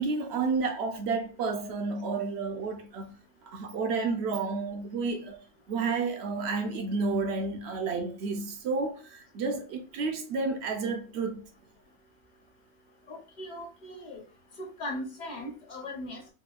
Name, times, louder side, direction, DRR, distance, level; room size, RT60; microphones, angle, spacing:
voice 1, 0.0-3.1 3.4-5.4 5.7-11.4, right 4 dB, 60° right, 0.8 m, -31 dB
voice 2, 13.1-14.2 14.6-16.3, left 1 dB, 40° left, 0.8 m, -39 dB
4.2 x 2.3 x 2.3 m
omnidirectional pair, 1.4 m